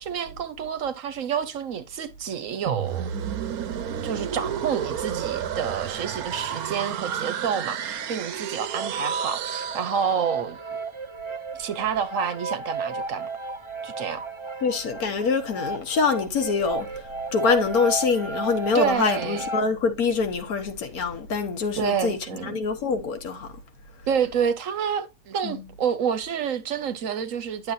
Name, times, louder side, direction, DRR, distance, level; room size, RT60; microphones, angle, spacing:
voice 1, 0.0-3.1 4.0-10.6 11.5-13.3 13.8-14.2 18.7-19.4 21.8-22.6 24.1-27.7, right 7 dB, 65° right, 1.2 m, -28 dB
sound 1, 2.7-10.5, right 9 dB, 85° right, 1.2 m, -31 dB
sound 2, 6.5-8.1 8.4-19.6, right 4 dB, 25° right, 0.8 m, -34 dB
voice 2, 14.6-17.1 17.3-23.5 25.4-25.6, left 5 dB, 85° left, 1.6 m, -25 dB
9.9 x 6.7 x 2.6 m
omnidirectional pair, 1.5 m